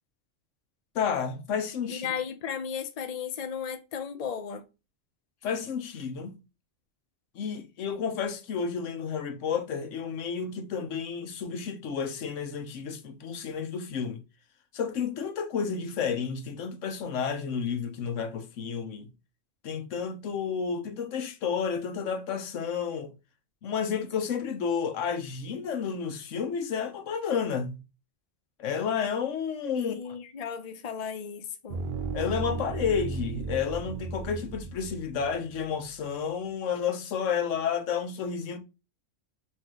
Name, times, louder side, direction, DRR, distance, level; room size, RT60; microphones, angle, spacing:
voice 1, 0.9-2.1 5.4-6.4 7.3-14.2 14.7-19.1 19.6-23.1 23.6-27.8 28.6-29.9 32.1-38.6, left 6 dB, 90° left, 1.1 m, -31 dB
voice 2, 1.9-4.7 29.7-31.8, left 7 dB, 50° left, 0.4 m, -35 dB
sound 1, 31.7-35.6, right 4 dB, 50° right, 0.8 m, -35 dB
5.8 x 2.7 x 3.0 m
omnidirectional pair, 1.2 m